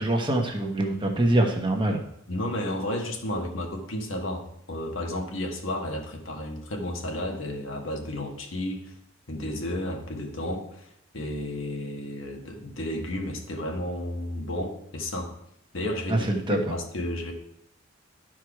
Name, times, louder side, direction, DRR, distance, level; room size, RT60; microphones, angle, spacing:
voice 1, 0.0-2.0 16.1-16.6, right 1 dB, 25° right, 2 dB, 1.1 m, -24 dB
voice 2, 2.3-8.9 9.3-15.3 15.7-17.3, left 1 dB, 70° left, 2 dB, 1.5 m, -32 dB
12.0 x 4.7 x 4.7 m, 0.74 s
head